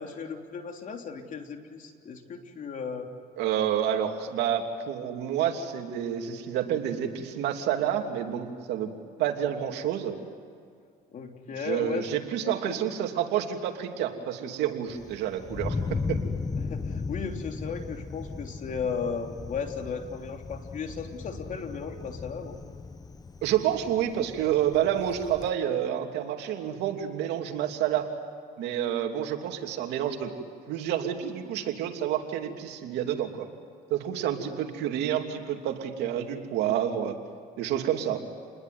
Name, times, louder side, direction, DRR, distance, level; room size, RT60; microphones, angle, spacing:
voice 1, 0.0-3.1 11.1-12.8 16.6-22.6, left 5 dB, 50° left, 4 dB, 3.4 m, -36 dB
voice 2, 3.4-8.9 9.2-10.1 11.6-15.8 16.1-16.2 23.4-28.1 28.6-30.3 30.7-33.5 33.9-37.2 37.6-38.2, right 10 dB, 85° right, 4 dB, 3.0 m, -29 dB
Thunder, 14.9-25.5, left 4 dB, 20° left, 1.0 m, -36 dB
29.0 x 21.0 x 9.5 m, 2.3 s
cardioid pair, 110°, 17 cm